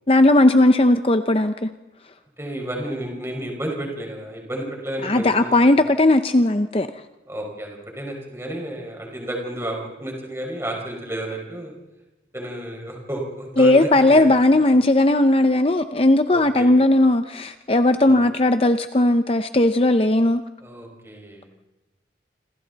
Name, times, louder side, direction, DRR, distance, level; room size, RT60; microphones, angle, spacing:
voice 1, 0.1-1.7 5.0-6.9 13.6-20.4, left 1 dB, 30° left, 9 dB, 0.7 m, -17 dB
voice 2, 2.4-5.8 7.3-11.7 12.3-14.3 16.3-16.7 18.0-18.2 20.6-21.5, right 1 dB, 15° right, 0 dB, 5.3 m, -32 dB
27.5 x 26.5 x 4.1 m, 1.0 s
head